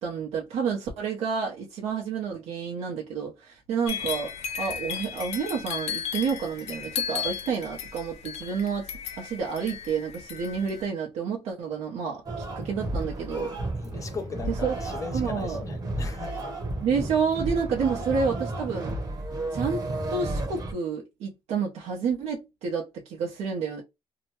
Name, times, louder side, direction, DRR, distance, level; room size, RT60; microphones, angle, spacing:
voice 1, 0.0-4.3 4.6-8.9 9.2-13.5 14.6-14.7 15.1-15.6 16.8-18.9 19.5-23.8, right 6 dB, 85° right, 0.8 m, -29 dB
sound 1, 3.9-10.9, left 8 dB, 90° left, 0.5 m, -35 dB
sound 2, 12.3-20.7, right 2 dB, 35° right, 1.0 m, -32 dB
voice 2, 13.8-16.4, left 5 dB, 30° left, 0.7 m, -38 dB
2.8 x 2.2 x 2.8 m
cardioid pair, 130°, 11 cm